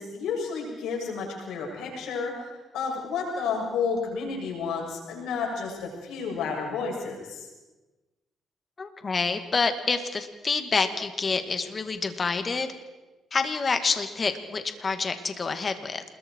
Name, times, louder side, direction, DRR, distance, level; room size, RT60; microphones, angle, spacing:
voice 1, 0.0-7.5, left 5 dB, 85° left, -1 dB, 7.5 m, -31 dB
voice 2, 8.8-12.7 13.3-16.0, left 4 dB, 35° left, 8 dB, 2.2 m, -27 dB
27.5 x 21.5 x 4.7 m, 1.1 s
cardioid pair, 90°, 0 cm